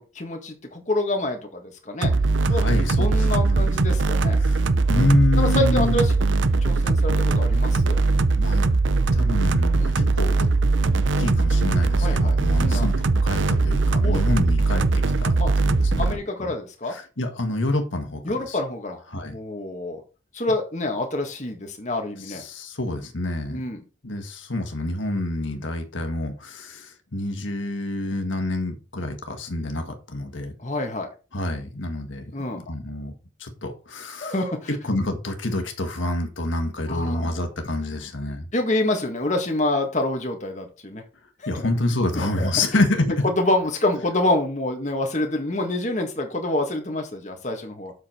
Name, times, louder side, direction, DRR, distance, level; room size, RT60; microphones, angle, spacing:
voice 1, 0.0-2.1 2.5-4.4 5.4-6.3 6.6-8.0 9.7-9.9 12.0-12.9 14.0-14.2 15.4-15.5 16.0-16.9 18.2-19.0 19.3-20.0 20.3-22.4 23.5-23.8 30.6-31.1 32.3-32.6 34.2-34.8 36.9-37.3 38.5-41.0 41.4-41.7 42.1-42.8 43.2-47.9, left 2 dB, 40° left, 1.8 m, -27 dB
sound 1, 2.0-16.1, right 3 dB, 80° right, 0.6 m, -20 dB
voice 2, 2.5-3.7 4.4-4.6 4.9-6.0 8.3-8.6 9.1-10.5 11.2-12.9 13.2-14.8 15.2-16.5 16.9-18.6 19.1-19.3 22.2-23.6 24.0-30.5 31.3-33.1 33.4-34.3 34.8-38.4 41.5-43.2, left 2 dB, 85° left, 1.7 m, -27 dB
7.6 x 6.7 x 4.4 m
head